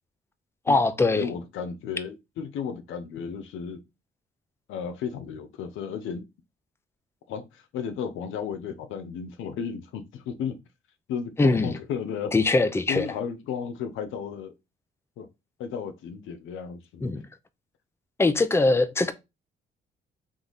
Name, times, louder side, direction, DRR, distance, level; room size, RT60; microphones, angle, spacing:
voice 1, 0.7-1.3 11.4-11.7 12.3-13.1 17.0-17.3 18.2-19.1, left 3 dB, 10° left, 0.6 m, -22 dB
voice 2, 1.2-3.8 4.7-6.2 7.3-10.6 11.1-12.4 12.9-14.5 15.2-15.3 15.6-17.1, left 7 dB, 85° left, 0.7 m, -34 dB
3.7 x 3.1 x 3.9 m
cardioid pair, 90°, 20 cm